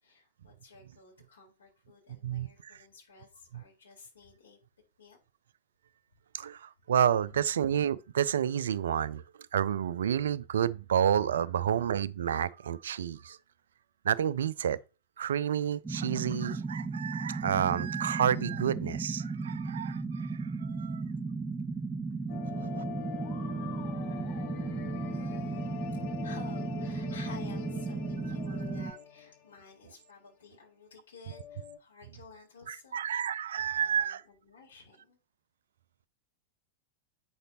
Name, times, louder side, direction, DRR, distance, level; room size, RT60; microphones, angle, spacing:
voice 1, 0.0-4.6 5.0-5.2 25.1-25.7 26.2-33.0 33.6-35.2, left 4 dB, 70° left, 4.1 m, -53 dB
voice 2, 2.2-2.7 3.5-3.6 6.3-9.2 9.5-13.4 14.0-14.8 15.2-21.0 22.5-22.8 32.7-34.2, right 9 dB, 65° right, 0.4 m, -30 dB
sound 1, 15.8-28.9, right 4 dB, 10° right, 0.4 m, -35 dB
sound 2, 22.3-29.8 30.1-30.2 31.3-31.8, left 8 dB, 50° left, 1.2 m, -43 dB
8.5 x 6.5 x 2.9 m
figure-of-eight pair, 90°, 0 cm